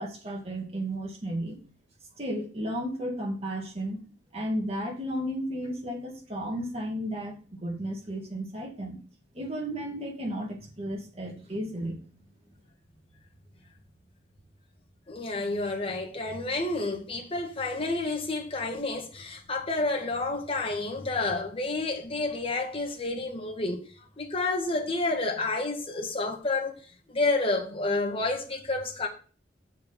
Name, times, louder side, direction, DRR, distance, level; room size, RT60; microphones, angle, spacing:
voice 1, 0.0-1.6 2.2-4.0 4.3-9.0 9.3-12.0, equal, 35° right, 2.4 m, -33 dB
voice 2, 15.1-23.8 24.2-26.7 27.1-29.1, left 2 dB, 30° left, 1.7 m, -29 dB
6.9 x 4.6 x 6.9 m
head